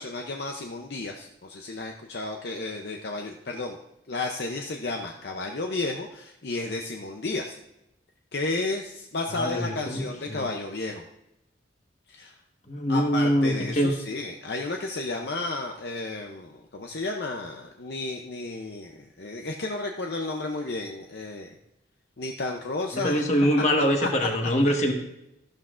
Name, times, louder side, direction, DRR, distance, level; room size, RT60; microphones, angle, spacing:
voice 1, 0.0-3.8 4.1-7.6 8.3-11.1 12.1-12.3 12.9-21.5 22.2-23.2 24.0-24.1 24.6-24.7, left 2 dB, 60° left, 2 dB, 0.7 m, -32 dB
voice 2, 9.3-10.5 12.7-13.9 22.9-24.9, equal, 35° left, 3 dB, 1.4 m, -24 dB
13.5 x 11.5 x 2.5 m, 0.87 s
head